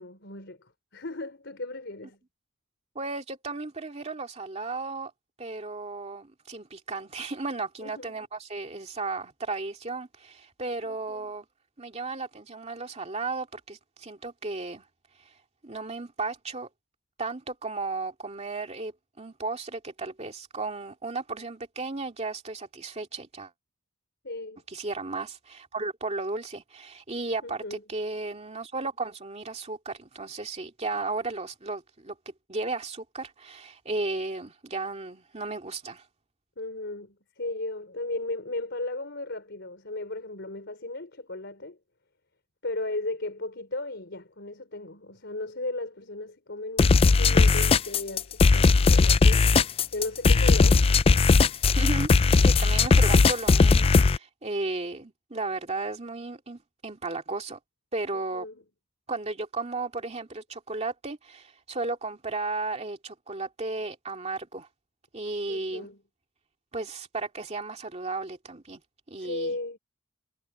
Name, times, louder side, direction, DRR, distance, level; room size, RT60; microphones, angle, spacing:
voice 1, 0.0-2.2 7.8-8.2 10.8-11.4 24.2-24.6 27.4-27.8 36.6-41.8 42.6-51.3 58.1-58.6 65.5-66.0 69.2-69.8, left 2 dB, 60° left, 4.3 m, -36 dB
voice 2, 2.9-5.1 5.4-11.4 11.8-14.8 15.6-16.7 17.2-23.5 24.7-32.2 32.5-36.0 51.7-52.1 52.4-57.6 57.9-58.5 59.1-64.7 65.1-65.9 66.7-68.8 69.1-69.6, right 3 dB, 35° right, 2.4 m, -34 dB
sound 1, 46.8-54.2, left 4 dB, 30° left, 0.3 m, -18 dB
head